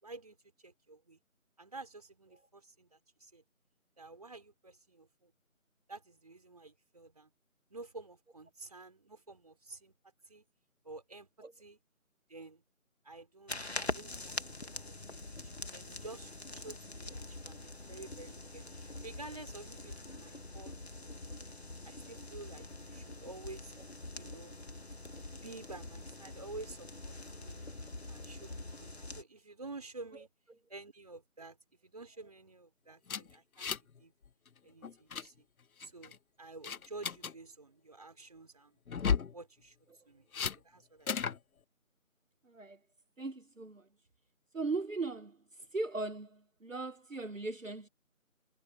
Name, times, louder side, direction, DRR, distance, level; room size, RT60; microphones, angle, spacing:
voice 1, 0.0-1.2 1.6-3.4 4.0-5.3 5.9-7.3 7.7-9.9 10.2-10.4 10.8-11.8 12.3-12.6 13.0-14.6 14.9-21.4 21.8-23.7 24.1-24.5 25.4-27.6 28.1-30.3 30.7-31.6 31.8-34.1 34.6-35.4 35.8-38.8 39.3-39.8 40.1-40.3 40.6-41.1, right 3 dB, 25° right, 4.4 m, -50 dB
sound 1, 13.5-29.2, left 2 dB, 50° left, 2.7 m, -44 dB
sound 2, 33.1-34.0 34.2-34.5 34.8-35.3 35.8-36.2 36.6-37.3 38.9-39.3 40.3-40.6 41.1-41.4, left 6 dB, 80° left, 0.7 m, -34 dB
voice 2, 42.5-42.8 43.2-43.8 44.5-45.4 45.7-47.9, right 3 dB, 65° right, 1.4 m, -38 dB
figure-of-eight pair, 170°, 42 cm